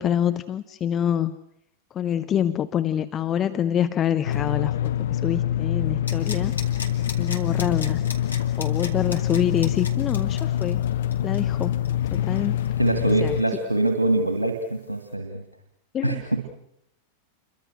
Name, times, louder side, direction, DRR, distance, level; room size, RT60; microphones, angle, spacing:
voice 1, 0.0-1.4 1.9-6.5 7.2-8.0 8.6-10.8 11.2-11.8 12.1-12.6 13.2-13.3 15.9-16.5, left 9 dB, 25° left, 11 dB, 0.9 m, -26 dB
sound 1, 4.3-13.4, left 11 dB, 60° left, 0.9 m, -25 dB
sound 2, 6.1-13.6 13.9-14.0, left 4 dB, 75° left, 2.9 m, -38 dB
voice 2, 12.8-15.4 16.0-16.5, right 2 dB, 85° right, 4 dB, 2.3 m, -24 dB
29.0 x 23.5 x 6.4 m, 0.76 s
figure-of-eight pair, 90°, 0 cm